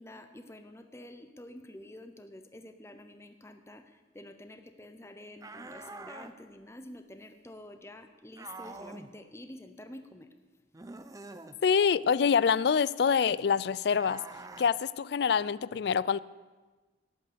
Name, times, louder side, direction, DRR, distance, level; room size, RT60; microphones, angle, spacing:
voice 1, 0.0-10.3, left 1 dB, 15° left, 8 dB, 0.8 m, -48 dB
sound 1, 5.4-6.3 8.4-9.1 10.7-11.6 13.9-14.7, right 3 dB, 20° right, 0.6 m, -45 dB
voice 2, 11.6-14.2 14.6-16.2, left 6 dB, 60° left, 20 dB, 0.3 m, -26 dB
18.0 x 8.4 x 6.9 m, 1.3 s
head